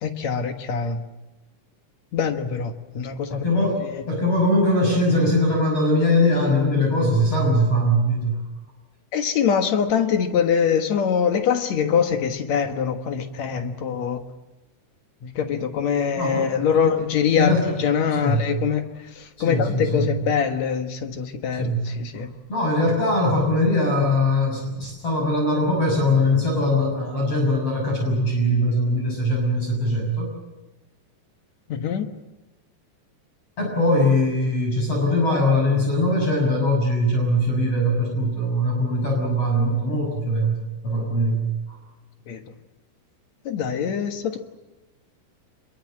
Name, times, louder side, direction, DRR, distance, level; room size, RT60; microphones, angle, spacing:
voice 1, 0.0-1.0 2.1-4.1 9.1-14.2 15.2-22.3 31.7-32.1 42.3-42.4 43.5-44.4, left 7 dB, 60° left, 2.0 m, -24 dB
voice 2, 3.3-8.4 16.2-16.8 17.4-17.6 18.2-18.5 19.4-20.1 21.6-21.8 22.2-30.3 33.6-40.6 40.8-41.8, left 1 dB, 35° left, 7.4 m, -21 dB
26.0 x 23.0 x 7.7 m
omnidirectional pair, 4.9 m